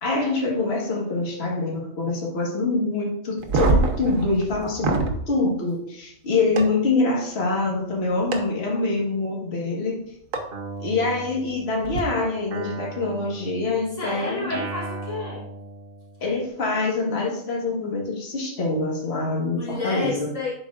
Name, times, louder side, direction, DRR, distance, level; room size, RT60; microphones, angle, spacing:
voice 1, 0.0-10.0 10.8-14.6 16.2-20.3, left 3 dB, 50° left, -2 dB, 1.7 m, -25 dB
sound 1, 3.4-5.2 6.6-6.7 8.3-8.4 10.3-10.4 11.8-12.0, right 3 dB, 80° right, 1.2 m, -23 dB
Guitar, 10.5-12.0 12.5-16.4, right 3 dB, 50° right, 1.1 m, -37 dB
voice 2, 14.0-15.5 19.5-20.5, left 3 dB, 65° left, -5 dB, 1.6 m, -30 dB
11.0 x 4.5 x 2.4 m, 0.71 s
omnidirectional pair, 1.4 m